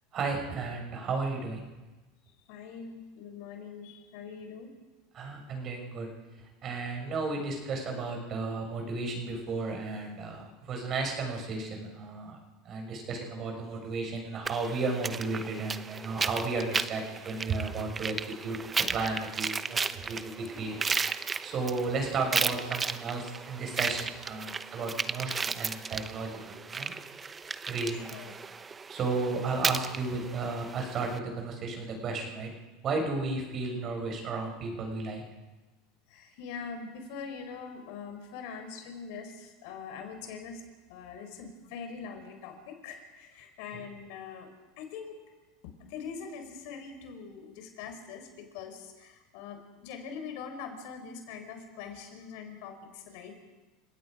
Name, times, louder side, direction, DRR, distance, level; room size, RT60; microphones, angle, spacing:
voice 1, 0.1-1.6 5.1-6.1 6.6-12.4 12.6-21.0 21.4-26.9 27.7-28.1 28.9-32.5 32.8-35.2 43.7-43.8, right 3 dB, 40° right, 3 dB, 5.9 m, -33 dB
voice 2, 2.5-4.7 28.1-28.3 36.1-40.6 40.9-44.5 44.8-45.2 45.8-53.3, left 6 dB, 70° left, 6 dB, 4.4 m, -43 dB
sound 1, 14.4-31.2, right 5 dB, 20° right, 0.9 m, -35 dB
30.0 x 17.5 x 5.1 m, 1.2 s
supercardioid pair, 105°, 0 cm